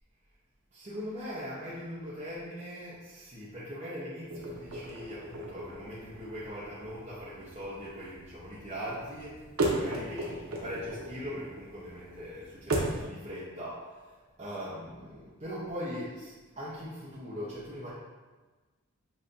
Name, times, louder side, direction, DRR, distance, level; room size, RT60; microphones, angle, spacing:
voice 1, 0.7-9.4 9.7-14.1 14.4-17.9, equal, 30° right, -9 dB, 0.8 m, -40 dB
sound 1, 4.3-13.1, right 1 dB, 85° right, 0.8 m, -36 dB
7.2 x 2.7 x 2.6 m, 1.3 s
head